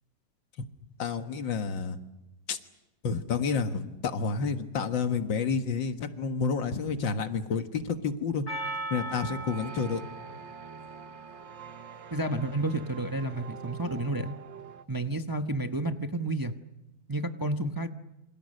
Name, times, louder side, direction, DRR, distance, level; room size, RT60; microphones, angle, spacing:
voice 1, 1.0-2.0 2.5-2.6 3.0-8.4 8.9-10.0, left 5 dB, 90° left, 7 dB, 2.3 m, -29 dB
Percussion, 8.5-12.8, right 2 dB, 55° left, 4.1 m, -40 dB
sound 1, 8.9-14.8, right 8 dB, 80° right, 1.8 m, -47 dB
voice 2, 12.1-14.4 14.9-16.5 17.1-17.9, right 1 dB, 15° right, 6 dB, 0.7 m, -30 dB
28.0 x 26.5 x 6.6 m, 0.97 s
omnidirectional pair, 2.0 m